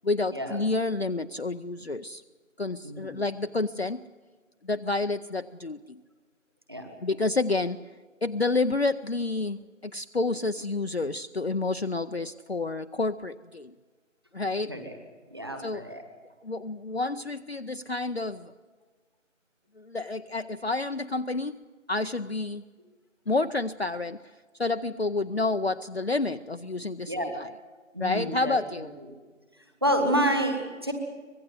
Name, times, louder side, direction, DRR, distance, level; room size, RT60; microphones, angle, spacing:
voice 1, 0.0-2.2 2.6-4.0 4.6-6.0 7.0-7.8 8.2-13.7 14.3-14.7 15.6-15.9 16.4-18.5 19.8-21.6 21.9-22.6 23.3-24.2 24.6-27.5 28.0-28.9, left 3 dB, 50° left, 8 dB, 0.6 m, -29 dB
voice 2, 2.8-3.1 6.7-6.9 14.7-15.0 15.3-16.0 27.1-27.3 27.9-28.8 29.8-30.9, equal, 20° right, 4 dB, 1.6 m, -28 dB
24.5 x 19.0 x 8.0 m, 1.4 s
figure-of-eight pair, 170°, 39 cm